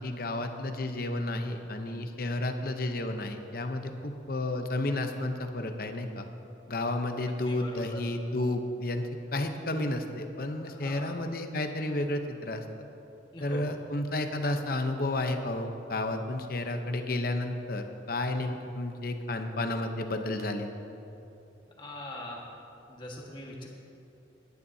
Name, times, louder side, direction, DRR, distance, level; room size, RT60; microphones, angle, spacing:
voice 1, 0.0-6.3 6.7-12.9 13.4-20.7, left 2 dB, 50° left, 6 dB, 0.8 m, -32 dB
voice 2, 7.5-8.0 10.6-11.1 13.3-13.7 21.8-22.5 22.9-23.7, left 1 dB, 25° left, -2 dB, 1.6 m, -42 dB
20.5 x 10.5 x 2.8 m, 2.9 s
head